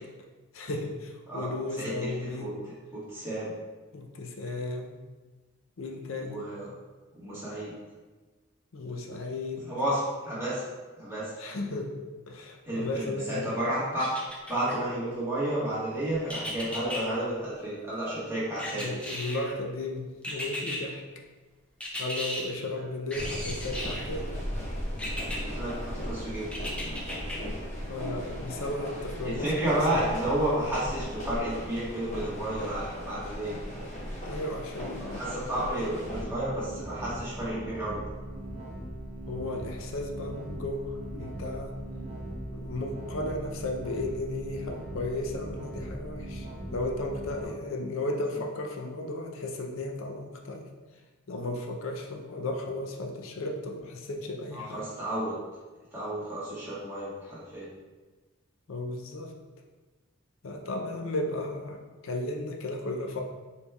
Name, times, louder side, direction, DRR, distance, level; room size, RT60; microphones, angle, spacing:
voice 1, 0.5-2.5 3.9-5.0 5.8-6.4 8.7-9.7 11.4-13.6 18.7-21.0 22.0-24.3 27.9-30.0 34.2-35.2 39.3-41.7 42.5-50.7 51.3-54.9 58.7-59.4 60.4-63.2, left 2 dB, 75° left, 2 dB, 0.5 m, -35 dB
voice 2, 1.8-3.5 6.2-6.7 7.1-7.7 9.7-10.6 11.0-11.3 12.7-14.1 14.5-18.9 25.3-26.5 29.2-33.6 35.0-38.0 47.4-47.5 54.5-55.4 55.9-57.7, right 1 dB, 10° right, -10 dB, 1.3 m, -31 dB
sound 1, 14.0-14.8 16.3-17.0 18.6-19.5 20.2-20.8 21.8-22.4 23.1-24.1 25.0-25.4 26.5-27.4 27.8-27.9, left 1 dB, 5° left, 0.4 m, -35 dB
sound 2, 23.1-36.2, equal, 35° left, 0.9 m, -37 dB
sound 3, 35.9-47.4, right 1 dB, 30° right, 0.9 m, -39 dB
5.0 x 3.3 x 2.3 m, 1.3 s
head